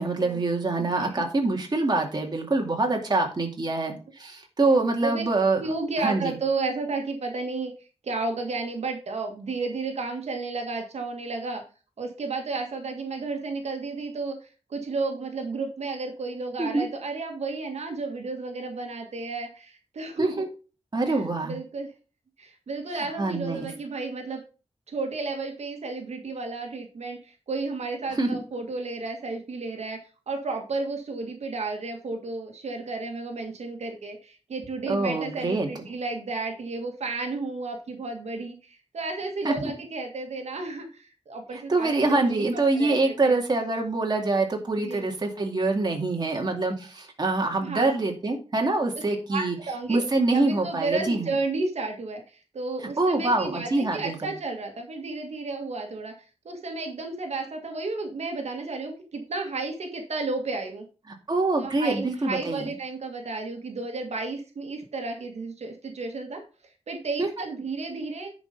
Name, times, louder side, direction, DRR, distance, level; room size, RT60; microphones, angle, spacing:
voice 1, 0.0-5.6 6.0-6.4 16.6-16.9 20.2-20.5 20.9-21.6 23.2-23.7 28.2-28.4 34.9-35.7 39.4-39.7 41.7-49.6 49.9-51.3 53.0-54.3 61.3-62.7 67.2-67.3, right 2 dB, 40° right, 1 dB, 2.4 m, -25 dB
voice 2, 0.8-1.1 5.0-5.2 5.6-7.7 8.0-11.6 12.0-14.4 14.7-20.3 21.1-21.2 21.4-21.9 22.4-24.4 24.9-30.0 30.3-42.4 42.8-43.0 43.2-43.3 44.8-45.0 47.6-47.9 49.3-50.0 50.3-56.1 56.5-60.8 61.6-66.4 66.9-68.3, right 3 dB, 80° right, 3 dB, 1.8 m, -32 dB
10.5 x 5.3 x 5.3 m, 0.35 s
wide cardioid pair, 105°, 11 cm